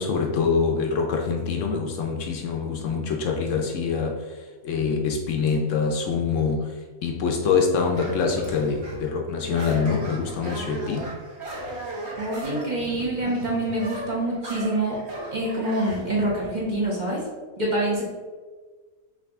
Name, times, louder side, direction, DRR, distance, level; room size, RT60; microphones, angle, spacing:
voice 1, 0.0-4.2 4.6-6.7 7.0-11.1, left 5 dB, 70° left, 2 dB, 0.9 m, -25 dB
sound 1, 7.9-9.1 9.5-16.0, right 1 dB, 55° right, 1.2 m, -36 dB
voice 2, 12.2-15.0 15.3-17.2 17.6-18.0, right 1 dB, 35° right, -5 dB, 0.9 m, -26 dB
4.9 x 2.6 x 3.4 m, 1.4 s
omnidirectional pair, 1.5 m